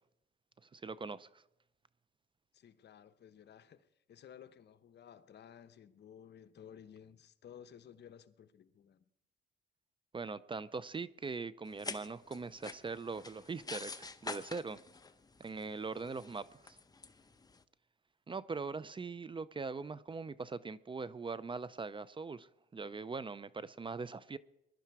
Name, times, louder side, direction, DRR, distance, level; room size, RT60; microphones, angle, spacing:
voice 1, 0.7-1.3 10.1-14.8 15.4-16.8 18.3-24.4, right 4 dB, 25° right, 0.5 m, -41 dB
voice 2, 2.5-9.1 16.1-16.5, left 9 dB, 60° left, 1.0 m, -56 dB
sound 1, 11.7-17.6, left 3 dB, 20° left, 0.9 m, -47 dB
20.5 x 11.5 x 4.7 m
cardioid pair, 90°, 20 cm